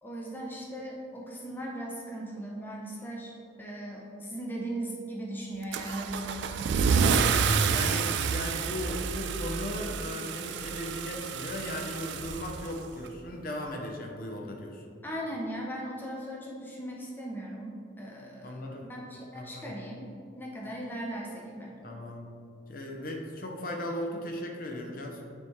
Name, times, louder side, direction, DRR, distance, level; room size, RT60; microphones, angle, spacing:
voice 1, 0.0-6.7 15.0-18.5 18.9-20.1 20.4-21.8, right 1 dB, 10° left, -2 dB, 0.6 m, -38 dB
Car / Engine starting / Accelerating revving vroom, 5.7-13.1, right 5 dB, 75° right, 0.3 m, -29 dB
voice 2, 7.3-14.8 18.4-18.9 19.3-19.7 21.8-22.3 22.7-25.2, left 1 dB, 50° left, 1 dB, 0.8 m, -37 dB
9.6 x 3.6 x 3.2 m, 2.4 s
head